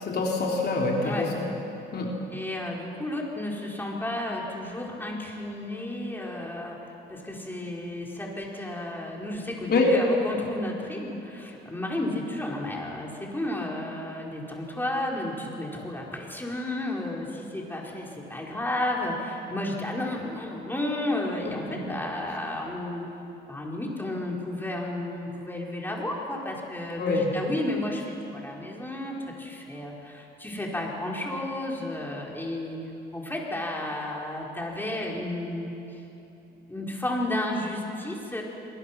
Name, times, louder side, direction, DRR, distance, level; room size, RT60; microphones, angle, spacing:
voice 1, 0.0-1.5 1.9-2.1 9.7-9.9 21.4-21.8 27.0-27.3, left 3 dB, 55° left, -2 dB, 3.6 m, -26 dB
voice 2, 2.3-6.8 7.1-23.1 23.5-32.8 33.1-35.7 36.7-38.4, left 1 dB, 10° left, -2 dB, 4.8 m, -32 dB
27.0 x 20.5 x 6.0 m, 2.9 s
cardioid pair, 90°, 20 cm